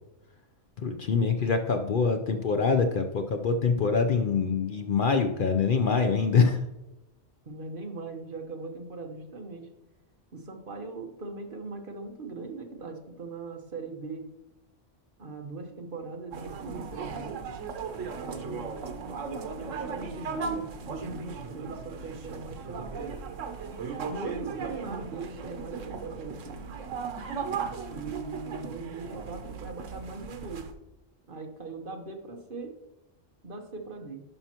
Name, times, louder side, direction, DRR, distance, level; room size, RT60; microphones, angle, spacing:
voice 1, 0.8-6.6, left 5 dB, 55° left, 6 dB, 0.7 m, -25 dB
voice 2, 7.5-9.7 10.3-14.3 15.2-17.4 18.2-18.8 19.1-22.9 24.1-26.6 27.9-30.7 31.3-32.8 33.4-34.2, right 3 dB, 45° right, 4 dB, 1.2 m, -40 dB
sound 1, 16.3-30.7, right 5 dB, 90° right, 1.2 m, -37 dB
11.0 x 5.7 x 2.9 m, 0.97 s
omnidirectional pair, 1.3 m